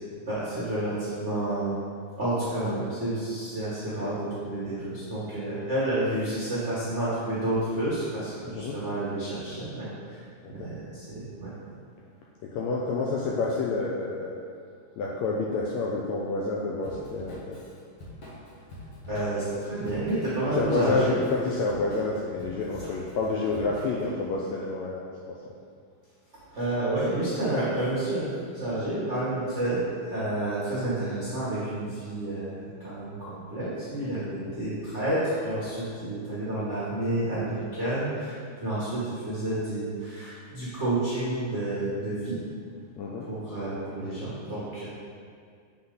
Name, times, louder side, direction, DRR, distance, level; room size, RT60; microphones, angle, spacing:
voice 1, 0.3-1.7 2.2-11.5 19.1-21.2 26.4-42.4 43.2-44.9, right 1 dB, 80° right, -10 dB, 0.6 m, -30 dB
voice 2, 3.8-4.2 8.5-8.7 10.4-10.7 12.5-14.4 15.0-17.6 20.6-25.5 34.5-34.6 43.0-43.3, left 3 dB, 85° left, -3 dB, 1.6 m, -29 dB
Drum kit / Drum, 16.8-24.1, left 1 dB, 65° left, 1.0 m, -45 dB
7.9 x 4.2 x 3.9 m, 2.1 s
omnidirectional pair, 3.7 m